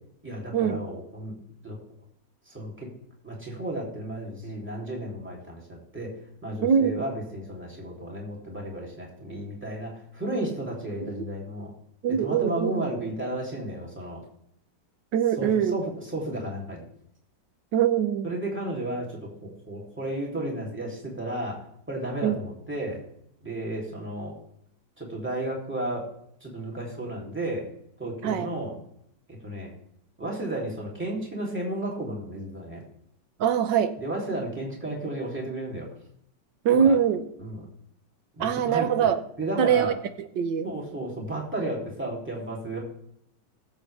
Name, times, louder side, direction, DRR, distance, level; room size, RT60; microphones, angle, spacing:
voice 1, 0.2-1.3 1.6-1.8 2.5-2.9 3.2-6.1 6.4-11.7 12.1-14.2 15.4-16.9 18.2-21.6 21.9-23.0 23.4-24.3 25.0-26.1 26.4-27.7 28.0-28.8 29.4-29.7 30.2-32.8 34.0-35.9 36.7-36.9 37.4-37.6 38.4-39.1 39.4-40.0 40.6-42.8, right 1 dB, 5° right, -3 dB, 3.0 m, -33 dB
voice 2, 12.0-12.7 15.1-15.8 17.7-18.4 22.2-22.3 28.2-28.5 33.4-34.0 36.7-37.2 38.4-39.2 39.6-39.9 40.4-40.7, right 8 dB, 85° right, 9 dB, 1.7 m, -23 dB
19.5 x 7.8 x 3.4 m, 0.73 s
omnidirectional pair, 1.9 m